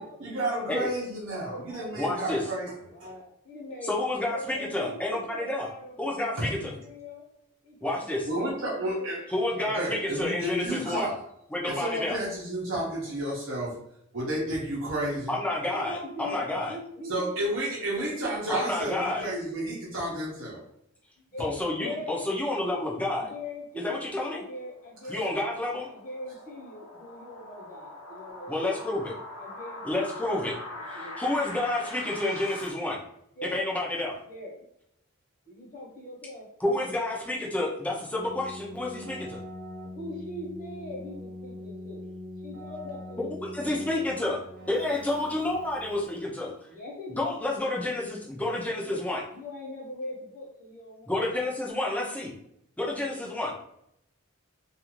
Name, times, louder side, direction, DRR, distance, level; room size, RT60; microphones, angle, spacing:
voice 1, 0.2-2.7 3.0-3.1 6.4-6.5 8.3-9.3 9.7-11.2 11.6-13.8 14.1-15.3 17.1-20.6 25.1-25.2, right 1 dB, 75° right, -5 dB, 0.7 m, -31 dB
voice 2, 1.4-2.5 2.9-7.3 7.6-9.2 15.6-18.1 21.2-22.3 23.1-25.3 25.9-28.8 29.4-31.1 33.4-33.7 34.3-34.5 35.5-36.5 39.9-42.0 42.4-43.2 43.9-44.1 44.6-45.0 46.7-47.4 48.0-48.2 48.8-49.0 49.3-51.2, left 2 dB, 40° left, -4 dB, 1.0 m, -42 dB
voice 3, 1.9-2.5 3.8-5.7 6.0-6.7 7.8-8.3 9.3-11.1 11.5-12.2 15.3-16.8 18.5-19.3 21.4-23.3 23.8-24.4 25.1-25.9 28.5-29.1 29.8-30.5 30.9-33.0 33.4-34.2 36.6-39.4 43.2-44.4 44.7-46.5 47.2-49.2 51.1-52.3 52.8-53.5, left 1 dB, 5° left, -3 dB, 0.5 m, -29 dB
sound 1, 24.5-32.7, left 2 dB, 80° left, 0.6 m, -42 dB
Keyboard (musical), 38.1-46.2, left 1 dB, 40° right, 0.9 m, -42 dB
2.4 x 2.4 x 2.9 m, 0.75 s
head